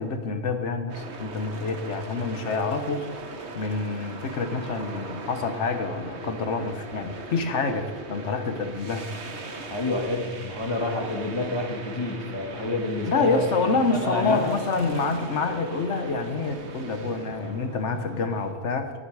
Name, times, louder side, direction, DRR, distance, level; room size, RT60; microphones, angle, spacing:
voice 1, 0.0-3.1 3.5-9.1 13.1-18.9, left 4 dB, 85° left, 7 dB, 1.3 m, -27 dB
sound 1, 0.9-18.5, right 2 dB, 70° right, 1.5 m, -39 dB
voice 2, 9.7-13.5 13.8-14.6, left 2 dB, 25° left, 1 dB, 1.9 m, -28 dB
19.0 x 8.1 x 4.8 m, 1.5 s
omnidirectional pair, 1.2 m